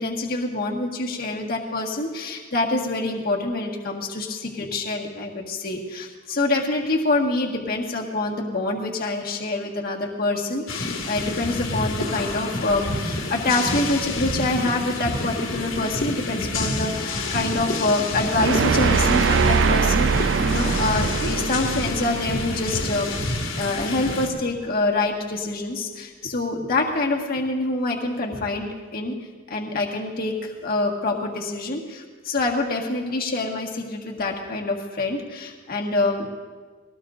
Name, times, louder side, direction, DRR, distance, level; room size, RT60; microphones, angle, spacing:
voice 1, 0.0-29.2 29.5-36.3, left 2 dB, 45° left, -1 dB, 1.7 m, -26 dB
sound 1, 10.7-24.3, left 2 dB, 80° left, 2.2 m, -28 dB
sound 2, 18.3-23.4, right 5 dB, 60° right, 0.4 m, -23 dB
21.0 x 18.0 x 2.6 m, 1.4 s
head